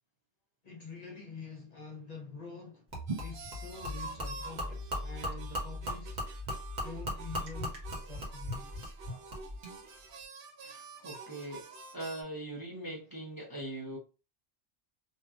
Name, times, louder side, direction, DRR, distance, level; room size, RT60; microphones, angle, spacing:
voice 1, 0.6-2.8 3.2-6.2 6.8-9.4, left 4 dB, 45° left, 0.6 m, -47 dB
Gurgling / Liquid, 2.9-9.7, equal, 45° right, 1.0 m, -38 dB
sound 1, 3.1-12.2, right 4 dB, 65° right, 0.8 m, -48 dB
voice 2, 10.6-14.0, right 1 dB, 25° right, 0.5 m, -41 dB
2.8 x 2.2 x 2.4 m
omnidirectional pair, 1.1 m